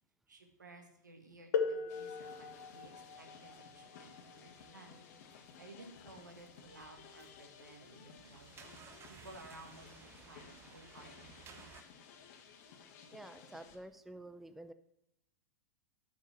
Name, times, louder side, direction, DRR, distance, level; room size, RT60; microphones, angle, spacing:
voice 1, 0.3-2.5 2.7-5.0 5.6-8.8 9.1-11.7, right 2 dB, 90° right, 4 dB, 1.5 m, -56 dB
sound 1, 1.5-7.0 8.0-8.1 8.9-9.2, left 5 dB, 70° left, 1.0 m, -41 dB
sound 2, 1.9-13.8, left 6 dB, 55° left, 1.4 m, -57 dB
sound 3, 6.4-6.6 7.2-7.6 7.8-11.8, right 6 dB, 25° right, 0.8 m, -57 dB
voice 2, 13.1-14.7, right 1 dB, ahead, 11 dB, 0.4 m, -50 dB
9.1 x 5.9 x 5.9 m, 0.81 s
hypercardioid pair, 105°, 10 cm